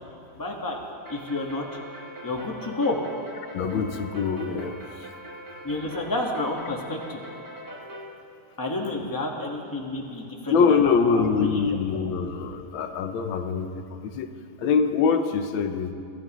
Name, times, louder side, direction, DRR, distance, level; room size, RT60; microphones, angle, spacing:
voice 1, 0.4-0.8 1.1-1.6 2.2-3.0 5.6-7.2 8.6-11.7 12.0-12.1, left 2 dB, 10° left, -1 dB, 1.4 m, -30 dB
sound 1, 1.0-8.1, equal, 10° right, 1.2 m, -42 dB
voice 2, 3.5-5.1 10.5-14.3 14.6-15.9, left 5 dB, 85° left, 8 dB, 1.6 m, -24 dB
24.5 x 13.5 x 3.0 m, 2.7 s
omnidirectional pair, 2.1 m